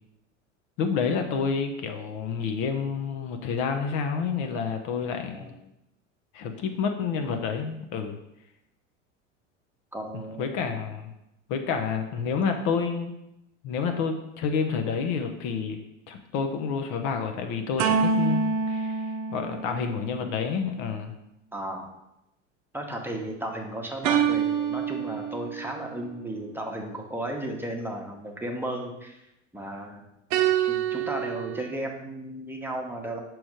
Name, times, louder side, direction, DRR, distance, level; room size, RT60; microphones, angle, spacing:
voice 1, 0.8-5.5 6.3-8.2 10.1-11.1 11.5-13.1 13.6-15.8 16.1-21.1, left 6 dB, 50° left, 5 dB, 0.8 m, -29 dB
voice 2, 9.9-10.5 21.5-21.9 22.7-29.2 29.5-30.0 30.6-33.2, right 1 dB, 5° right, 1 dB, 1.0 m, -34 dB
sound 1, 17.8-20.3 24.0-25.9 30.3-31.7, right 6 dB, 45° right, 0.7 m, -26 dB
6.1 x 3.1 x 4.9 m, 0.86 s
hypercardioid pair, 80°, 38 cm